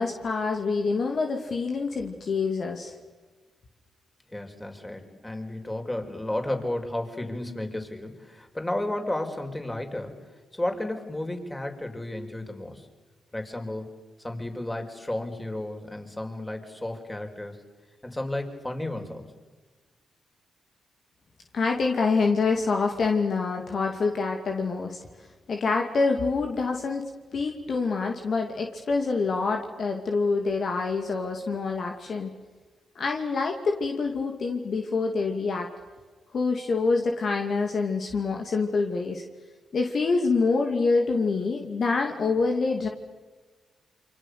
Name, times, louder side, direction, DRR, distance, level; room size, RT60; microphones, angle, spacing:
voice 1, 0.0-2.9 21.5-25.0 25.5-32.3 32.9-35.7 36.3-39.2 39.7-42.9, left 4 dB, 60° left, 3 dB, 2.7 m, -26 dB
voice 2, 4.3-10.2 10.5-12.9 13.3-13.9 14.2-17.6 18.0-19.2, left 1 dB, 15° left, 4 dB, 5.8 m, -33 dB
28.5 x 25.0 x 6.9 m, 1.3 s
hypercardioid pair, 40°, 0 cm